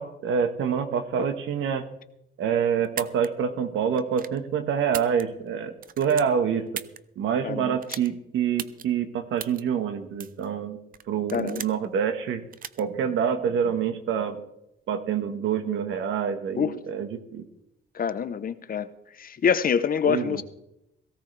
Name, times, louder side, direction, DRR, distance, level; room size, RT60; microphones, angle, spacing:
voice 1, 0.0-1.9 2.4-6.7 7.2-10.8 11.1-12.4 12.8-14.4 14.9-17.4 20.0-20.4, right 7 dB, 80° right, 8 dB, 1.5 m, -26 dB
sound 1, 2.8-3.3 4.0-4.4 4.8-5.5 5.8-7.0 7.8-8.1 8.6-8.8 9.4-9.6 10.2-10.5 10.9-11.9 12.5-12.8, right 8 dB, 45° right, 0.6 m, -37 dB
voice 2, 7.4-7.8 11.3-11.6 16.6-16.8 17.9-18.9 19.2-20.4, left 7 dB, 45° left, 12 dB, 0.9 m, -25 dB
18.0 x 16.0 x 3.4 m, 0.83 s
cardioid pair, 90°, 20 cm